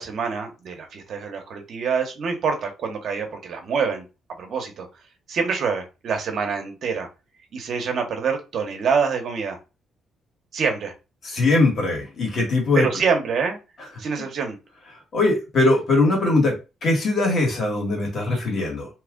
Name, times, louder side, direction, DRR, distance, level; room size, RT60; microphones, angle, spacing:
voice 1, 0.0-4.0 4.4-4.9 5.3-7.1 7.5-9.6 10.5-10.9 12.7-13.6 14.0-14.6, right 5 dB, 65° right, 4 dB, 1.0 m, -26 dB
voice 2, 11.2-12.9 15.1-16.5 16.8-18.9, left 2 dB, 50° left, 0 dB, 1.6 m, -21 dB
2.9 x 2.4 x 3.7 m, 0.29 s
cardioid pair, 90°, 0 cm